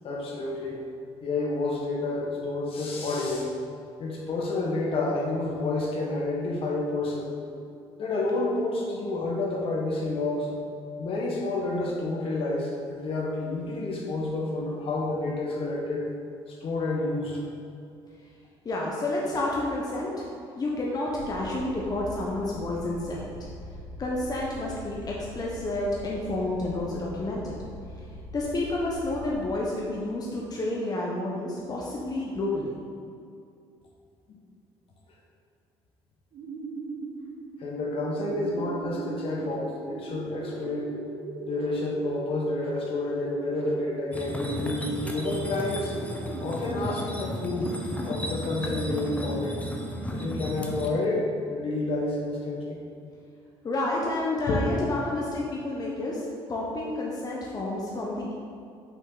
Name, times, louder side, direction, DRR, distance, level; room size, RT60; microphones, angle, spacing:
voice 1, 0.0-0.9 1.2-3.5 4.0-7.4 8.0-10.5 11.0-16.1 16.5-17.4 37.6-41.0 41.4-45.9 46.4-47.7 48.0-49.7 50.1-52.8 54.5-54.6, left 2 dB, 55° left, -2 dB, 1.4 m, -29 dB
voice 2, 18.6-20.3 20.6-23.3 24.0-27.6 28.3-32.7 53.6-58.3, left 2 dB, 35° left, -3 dB, 1.1 m, -30 dB
sound 1, 21.1-29.5, left 1 dB, 90° left, 1.2 m, -43 dB
sound 2, 36.3-51.2, right 3 dB, 60° right, 0.7 m, -39 dB
sound 3, 44.1-50.9, left 1 dB, 10° left, 0.9 m, -34 dB
6.2 x 5.1 x 4.1 m, 2.5 s
supercardioid pair, 80°, 11 cm